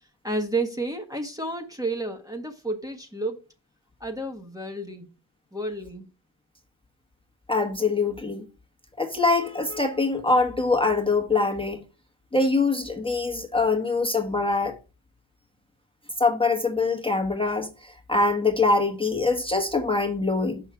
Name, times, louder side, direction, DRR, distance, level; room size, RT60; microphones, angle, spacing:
voice 1, 0.2-3.4 4.0-5.1 5.5-6.1, right 2 dB, 5° right, 1.4 m, -31 dB
voice 2, 7.5-8.4 9.0-11.8 12.3-14.8 16.2-17.7 18.1-20.6, left 3 dB, 10° left, 1.3 m, -23 dB
6.0 x 5.5 x 3.6 m
cardioid pair, 55°, 49 cm